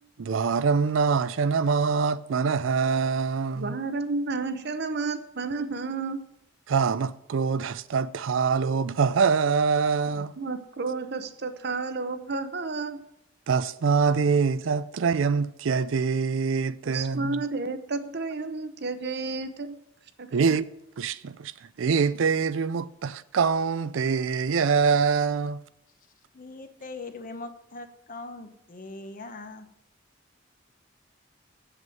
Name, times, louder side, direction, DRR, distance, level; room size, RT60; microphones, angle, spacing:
voice 1, 0.2-3.8 6.7-10.3 13.5-17.4 20.3-20.7 21.0-21.5 21.8-25.6, right 5 dB, 70° right, 0.4 m, -24 dB
voice 2, 3.6-6.2 10.1-13.0 16.9-19.8 20.2-20.3, right 3 dB, 55° right, 0.9 m, -31 dB
voice 3, 26.3-29.7, left 3 dB, 45° left, 1.0 m, -41 dB
8.0 x 7.4 x 7.7 m
head